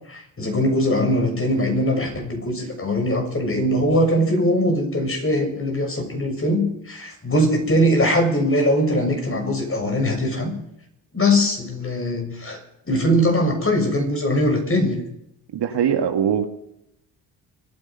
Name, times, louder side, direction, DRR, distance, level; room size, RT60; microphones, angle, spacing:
voice 1, 0.1-10.5 11.1-12.6 12.9-15.0, equal, 30° left, 3 dB, 6.7 m, -21 dB
voice 2, 15.5-16.5, right 8 dB, 60° right, 6 dB, 1.8 m, -21 dB
24.5 x 9.7 x 5.5 m, 0.79 s
supercardioid pair, 60°, 45 cm